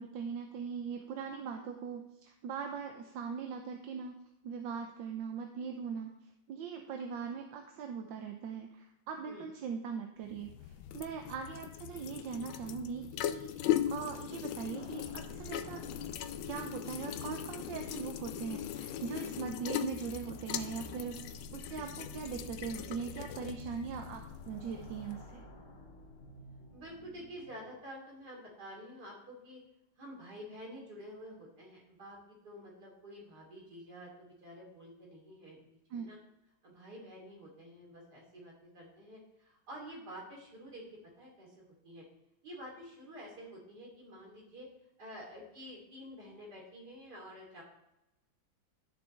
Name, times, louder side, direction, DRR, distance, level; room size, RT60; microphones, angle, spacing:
voice 1, 0.0-4.2 4.4-6.2 6.5-15.8 16.5-25.5 35.9-36.1, right 6 dB, 75° right, 4 dB, 1.4 m, -41 dB
sound 1, 10.3-25.3, left 11 dB, 85° left, 1.4 m, -39 dB
sound 2, 14.7-27.8, equal, 60° left, 2.2 m, -52 dB
voice 2, 26.7-29.6 30.0-36.2 36.6-40.8 41.2-41.6 41.8-42.1 42.4-44.7 45.0-47.6, equal, 55° right, -3 dB, 3.8 m, -49 dB
13.5 x 6.9 x 3.4 m, 0.89 s
omnidirectional pair, 2.1 m